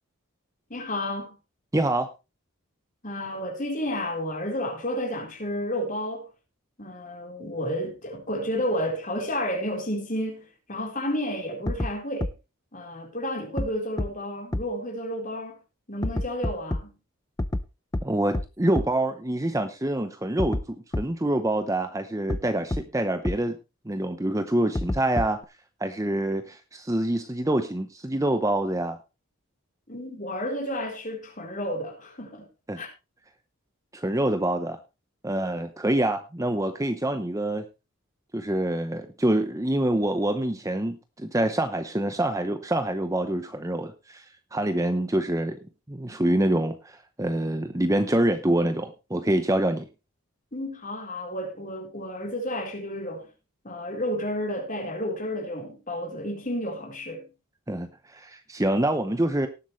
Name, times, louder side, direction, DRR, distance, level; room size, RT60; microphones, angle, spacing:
voice 1, 0.7-1.4 3.0-6.3 6.8-12.3 12.7-15.6 15.9-16.9 29.9-32.5 32.8-32.9 50.5-53.3 53.6-57.3, equal, 35° left, 4.1 m, -31 dB
voice 2, 1.7-2.1 18.0-23.6 23.9-25.4 25.8-29.0 32.7-32.8 33.9-34.8 35.2-37.6 38.3-44.2 44.5-45.6 45.9-49.9 57.7-59.5, right 1 dB, 15° right, 0.7 m, -26 dB
sound 1, 11.7-11.9 12.2-12.3 13.6-13.7 14.0-14.1 14.5-14.6 16.0-16.8 17.4-17.6 17.9-18.0 18.3-18.4 18.7-18.8 20.4-20.6 20.9-21.0 22.3-22.4 22.7-22.8 23.2-23.3 24.7-25.4, left 1 dB, 15° left, 0.5 m, -26 dB
18.5 x 7.9 x 3.2 m
head